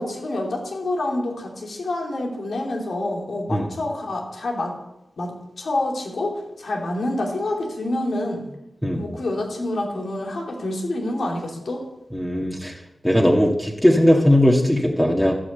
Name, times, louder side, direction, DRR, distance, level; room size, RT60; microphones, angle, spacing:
voice 1, 0.0-4.7 5.2-8.5 8.9-11.8, left 1 dB, 75° left, 0 dB, 2.8 m, -27 dB
voice 2, 12.1-12.7 13.0-15.4, equal, 10° left, -2 dB, 1.9 m, -18 dB
13.0 x 6.3 x 8.0 m, 0.91 s
cardioid pair, 40°, 0 cm